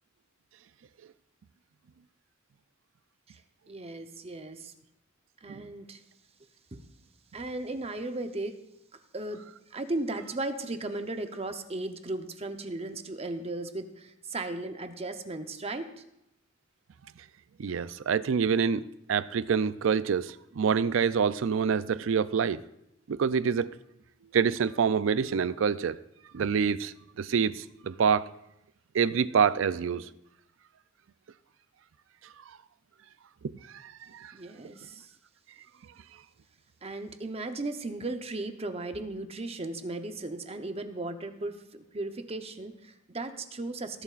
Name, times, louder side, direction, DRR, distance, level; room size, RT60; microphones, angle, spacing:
voice 1, 3.7-4.7 5.4-6.0 6.7-6.8 7.3-8.6 9.1-9.4 9.7-16.0 34.3-35.1 36.8-44.0, right 2 dB, 30° right, 0.8 m, -36 dB
voice 2, 17.6-22.6 23.1-23.7 24.3-26.0 26.3-28.3 28.9-30.1 33.8-34.3, right 6 dB, 70° right, 0.4 m, -26 dB
19.0 x 11.5 x 2.5 m
head